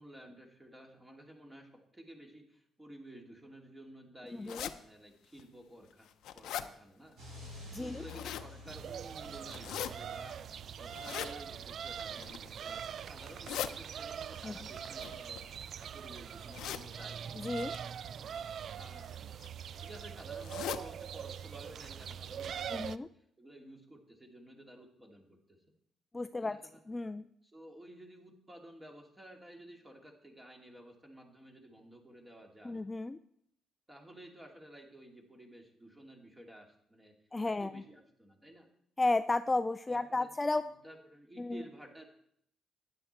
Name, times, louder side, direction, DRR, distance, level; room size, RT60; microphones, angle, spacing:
voice 1, 0.0-7.2 7.7-15.4 15.8-17.3 18.1-18.4 18.7-19.2 19.6-25.6 26.4-26.8 27.4-32.8 33.9-37.1 37.4-38.7 39.9-40.4 40.6-42.1, right 1 dB, 15° right, 1 dB, 2.7 m, -53 dB
voice 2, 4.4-4.7 7.7-8.0 14.4-14.5 17.4-17.7 22.7-23.1 26.1-26.6 26.9-27.2 32.6-33.2 37.3-37.8 39.0-40.7 41.4-41.6, left 2 dB, 20° left, 11 dB, 0.4 m, -33 dB
sound 1, 4.5-4.7 5.4-5.5 5.9-6.7 7.8-8.5 9.4-9.9 10.9-11.3 12.1-12.5 13.2-13.7 14.8-15.8 16.5-16.9 17.5-17.8 18.8-19.1 19.4-19.5 19.7-19.8 20.4-20.8 21.3-21.4 21.6-21.7 22.3-22.4 22.7-22.8, left 10 dB, 80° left, 0.7 m, -40 dB
sound 2, 7.2-14.7, left 2 dB, 80° right, 6.1 m, -53 dB
sound 3, 8.7-23.0, right 8 dB, 60° right, 0.4 m, -43 dB
12.5 x 9.8 x 4.4 m, 0.72 s
cardioid pair, 90°, 0 cm